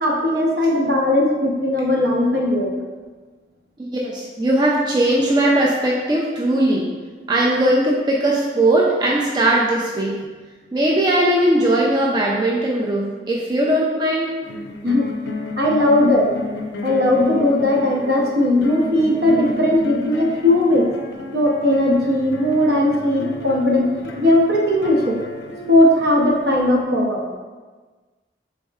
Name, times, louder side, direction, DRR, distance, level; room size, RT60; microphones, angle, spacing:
voice 1, 0.0-2.7 14.8-15.1 15.6-16.3 16.8-20.9 21.3-25.2 25.7-27.2, left 1 dB, 65° right, -1 dB, 0.6 m, -18 dB
voice 2, 3.8-6.9 7.3-10.1 10.7-14.3, right 1 dB, 25° right, -4 dB, 0.3 m, -19 dB
sound 1, 14.4-26.8, left 2 dB, 75° left, 0.4 m, -33 dB
4.2 x 3.5 x 2.3 m, 1.4 s
head